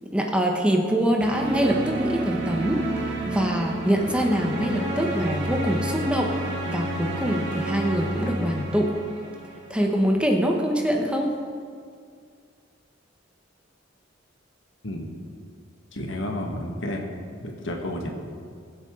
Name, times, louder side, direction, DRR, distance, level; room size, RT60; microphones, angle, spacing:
voice 1, 0.0-2.8 3.2-6.4 6.7-8.9 9.7-11.3, equal, 5° right, 1 dB, 1.1 m, -24 dB
sound 1, 1.2-10.0, right 1 dB, 65° right, 2.2 m, -30 dB
voice 2, 15.9-17.1 17.4-18.1, left 1 dB, 70° left, 2 dB, 1.7 m, -31 dB
21.0 x 8.1 x 3.8 m, 2.2 s
head